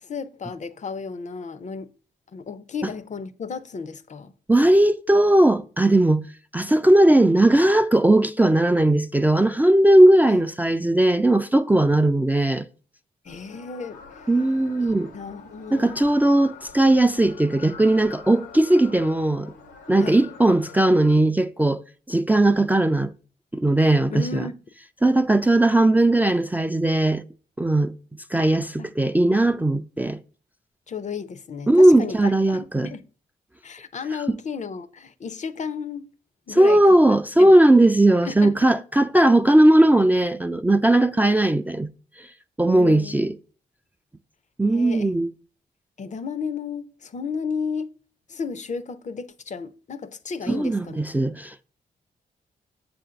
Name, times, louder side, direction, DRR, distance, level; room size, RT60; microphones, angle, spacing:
voice 1, 0.0-1.9 2.3-4.3 10.3-10.4 13.2-14.3 15.1-16.0 20.0-20.2 24.1-24.5 28.8-28.9 30.9-33.0 33.6-36.1 36.5-37.0 37.4-37.5 38.2-38.7 42.7-43.1 44.7-45.1 46.0-47.9 48.3-51.0, left 5 dB, 45° left, 0.5 m, -33 dB
voice 2, 4.5-6.2 6.5-12.6 14.3-15.1 15.7-19.5 19.9-21.8 22.1-23.1 23.5-24.4 25.0-27.2 27.6-27.9 28.3-30.2 31.7-32.9 34.3-34.4 36.5-41.9 42.6-43.3 44.6-45.3 50.5-51.6, right 1 dB, 10° right, 0.3 m, -18 dB
sound 1, 13.3-21.2, left 6 dB, 85° left, 0.9 m, -44 dB
7.1 x 2.6 x 5.6 m
supercardioid pair, 50°, 18 cm